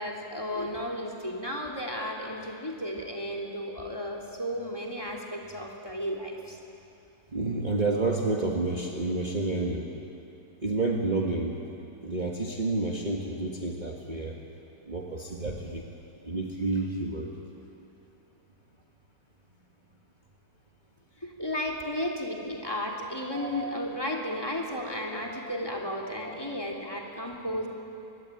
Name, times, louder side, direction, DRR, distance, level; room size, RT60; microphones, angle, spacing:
voice 1, 0.0-6.6 21.2-27.7, left 1 dB, 15° left, -1 dB, 3.1 m, -34 dB
voice 2, 7.3-9.9 10.6-11.6 12.0-14.3 14.9-15.8 16.2-17.3 23.0-23.8 25.1-25.5 26.2-26.6, right 2 dB, 25° right, -1 dB, 1.8 m, -30 dB
25.0 x 21.5 x 9.2 m, 2.8 s
omnidirectional pair, 1.8 m